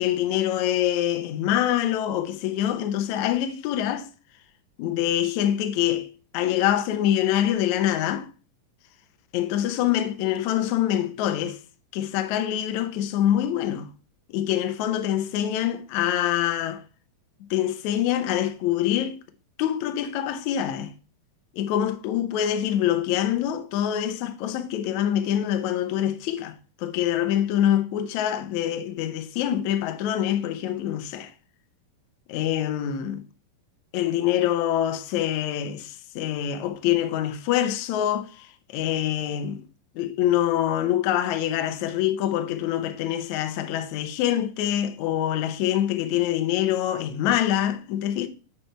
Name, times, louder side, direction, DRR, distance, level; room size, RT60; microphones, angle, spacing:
voice 1, 0.0-4.1 4.8-8.3 9.3-11.6 11.9-13.9 14.3-16.8 17.5-19.2 19.6-20.9 21.5-31.3 32.3-33.2 33.9-39.6 40.0-48.3, left 11 dB, 70° left, 1.8 m, -25 dB
9.8 x 4.5 x 3.3 m
omnidirectional pair, 4.2 m